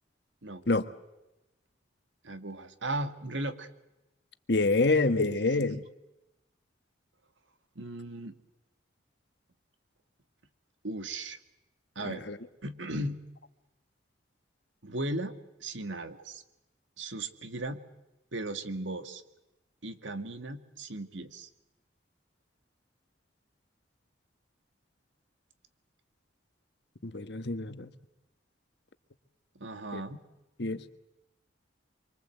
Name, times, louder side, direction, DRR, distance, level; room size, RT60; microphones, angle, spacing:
voice 1, 2.2-3.7 5.3-5.7 7.8-8.3 10.8-11.4 12.0-12.2 12.6-13.2 14.8-15.3 15.6-16.4 17.0-17.8 18.3-19.2 19.8-21.5 29.6-30.2, right 1 dB, 80° right, 9 dB, 2.0 m, -36 dB
voice 2, 4.5-5.8 12.0-12.4 27.0-27.9 29.9-30.0 30.6-31.0, left 3 dB, 60° left, 11 dB, 1.3 m, -27 dB
26.5 x 24.5 x 8.0 m, 0.95 s
head